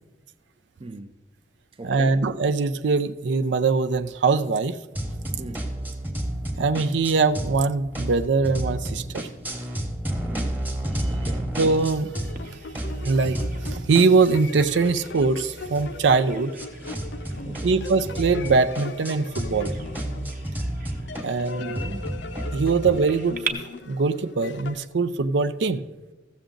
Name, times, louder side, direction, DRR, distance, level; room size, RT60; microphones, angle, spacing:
voice 1, 0.8-1.1 1.8-2.3 5.4-5.7 10.3-10.6 11.1-11.5 17.4-17.8 21.6-22.1, right 2 dB, 30° right, 0.5 m, -39 dB
voice 2, 1.8-4.8 6.6-9.3 11.6-12.1 13.0-13.4 13.6-16.5 17.6-19.7 21.2-21.8 22.5-23.6 23.9-25.9, right 4 dB, 80° right, 0.5 m, -22 dB
sound 1, 5.0-7.6 7.9-12.5 12.7-23.0, right 1 dB, 10° right, 1.1 m, -32 dB
sound 2, 12.0-24.9, left 3 dB, 70° left, 0.6 m, -39 dB
Bird vocalization bird call bird song, 12.4-23.5, right 6 dB, 45° right, 0.9 m, -42 dB
15.0 x 7.0 x 3.8 m
head